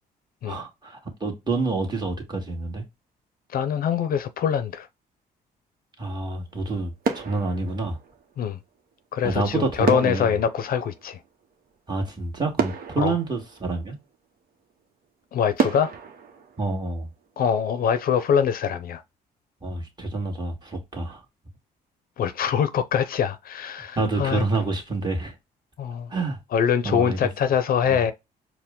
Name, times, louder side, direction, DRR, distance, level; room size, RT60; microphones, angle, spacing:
voice 1, 0.4-2.8 6.0-8.0 9.2-10.4 11.9-14.0 16.6-17.1 19.6-21.2 23.9-25.3 26.1-26.4 26.8-27.3 27.8-28.0, right 3 dB, 25° right, 1.7 m, -28 dB
voice 2, 3.5-4.9 8.4-8.6 9.1-11.2 13.0-13.1 15.3-15.9 17.4-19.0 22.2-24.4 25.8-26.1 26.5-28.1, left 8 dB, 60° left, 0.6 m, -24 dB
sound 1, 6.4-6.7 7.0-8.5 9.8-11.8 12.2-12.3 12.6-14.1 14.7-14.8 15.6-17.5 17.8-18.0, right 5 dB, 60° right, 0.9 m, -31 dB
4.6 x 2.2 x 3.6 m
cardioid pair, 85°, 17 cm